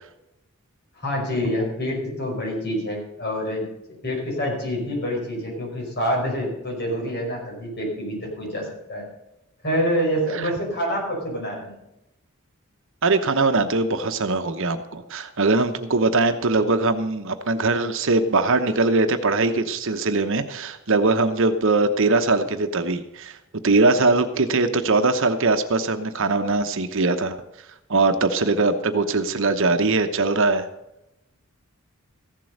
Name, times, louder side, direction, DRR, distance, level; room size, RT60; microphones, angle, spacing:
voice 1, 1.0-3.7 4.0-9.1 9.6-11.8, equal, 50° left, -1 dB, 5.2 m, -26 dB
voice 2, 13.0-23.4 23.6-27.4 27.9-30.7, right 3 dB, 60° right, 8 dB, 1.0 m, -21 dB
15.0 x 7.6 x 6.5 m, 0.89 s
head